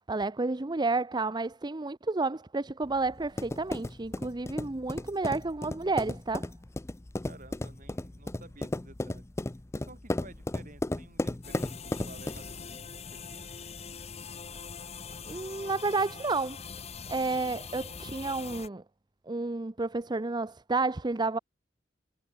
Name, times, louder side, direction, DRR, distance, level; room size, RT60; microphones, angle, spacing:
voice 1, 0.1-6.5 15.2-16.6 17.1-18.8 19.3-21.4, right 3 dB, 25° right, 0.7 m, -31 dB
sound 1, 2.8-12.6, left 1 dB, 15° left, 0.5 m, -35 dB
voice 2, 7.3-9.3 9.7-13.5, right 2 dB, 45° right, 6.4 m, -53 dB
sound 2, 11.4-18.7, left 5 dB, 35° left, 1.1 m, -43 dB
head